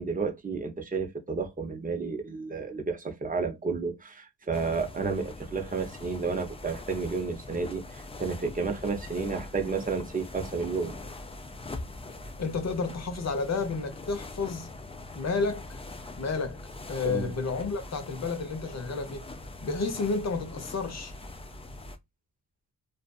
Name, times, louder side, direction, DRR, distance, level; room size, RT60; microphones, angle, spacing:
voice 1, 0.0-10.9 17.0-17.3, right 4 dB, 20° right, 0.6 m, -31 dB
sound 1, 4.5-22.0, left 2 dB, 15° left, 0.3 m, -43 dB
voice 2, 12.4-14.7 15.2-15.8 16.2-16.6 16.9-19.3 19.6-21.1, left 4 dB, 40° left, 0.8 m, -31 dB
2.5 x 2.3 x 2.2 m
wide cardioid pair, 130°, 41 cm